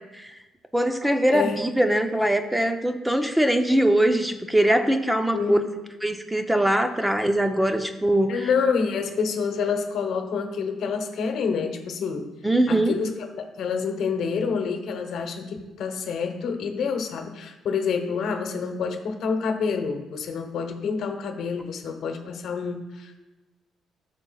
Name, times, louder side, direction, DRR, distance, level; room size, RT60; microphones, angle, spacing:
voice 1, 0.7-5.6 6.0-8.5 12.4-13.0, right 1 dB, 5° right, 7 dB, 0.6 m, -22 dB
voice 2, 8.3-12.3 12.7-23.2, left 5 dB, 70° left, 5 dB, 1.0 m, -28 dB
12.5 x 6.8 x 2.4 m, 1.1 s
cardioid pair, 85°, 0 cm